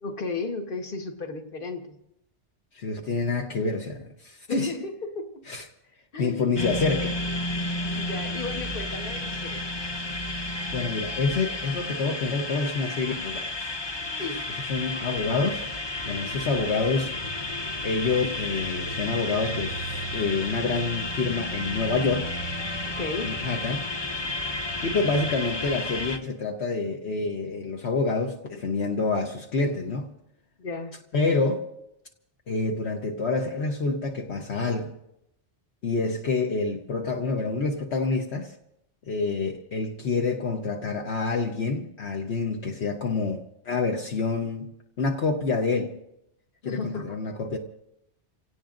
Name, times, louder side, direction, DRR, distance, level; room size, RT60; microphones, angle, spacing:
voice 1, 0.0-2.0 4.5-5.3 6.1-6.5 8.0-9.6 14.2-14.4 14.9-15.2 22.9-23.3 30.6-30.9 46.6-47.2, left 3 dB, 50° left, 1.5 m, -34 dB
voice 2, 2.7-4.7 5.5-5.7 6.2-7.2 7.9-8.0 10.7-13.8 14.6-15.6 16.1-17.1 17.5-17.6 17.8-22.4 23.2-23.8 24.8-30.1 31.1-31.7 32.5-34.9 35.8-38.5 39.1-44.7 45.0-45.9 46.6-47.6, left 4 dB, 70° left, 1.3 m, -27 dB
sound 1, 6.6-26.2, left 2 dB, 25° left, 0.8 m, -32 dB
30.0 x 17.5 x 2.6 m
omnidirectional pair, 1.2 m